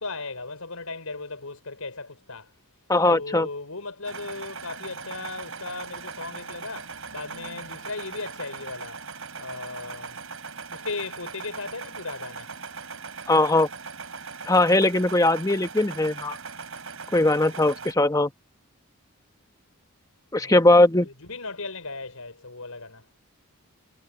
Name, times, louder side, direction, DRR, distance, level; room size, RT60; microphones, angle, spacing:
voice 1, 0.0-2.5 3.1-9.0 9.4-10.2 10.7-12.5 20.4-23.0, left 3 dB, 80° left, 5.0 m, -37 dB
voice 2, 2.9-3.5 13.3-13.7 14.5-16.4 17.1-18.3 20.3-21.1, left 2 dB, 15° left, 1.0 m, -20 dB
sound 1, 4.0-17.9, right 5 dB, 65° right, 5.6 m, -39 dB
head